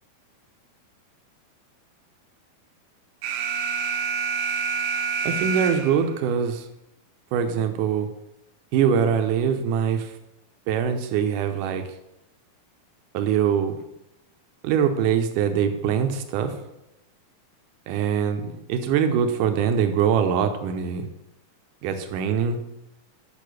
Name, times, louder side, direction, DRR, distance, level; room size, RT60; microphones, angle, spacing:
Alarm, 3.2-6.2, right 5 dB, 90° right, 2.9 m, -27 dB
voice 1, 5.2-6.7 7.3-8.1 8.7-10.1 10.7-11.8 13.1-13.8 14.6-16.6 17.9-21.1 21.8-22.6, right 7 dB, 70° right, 7 dB, 2.2 m, -23 dB
8.7 x 5.9 x 6.4 m, 0.88 s
omnidirectional pair, 4.2 m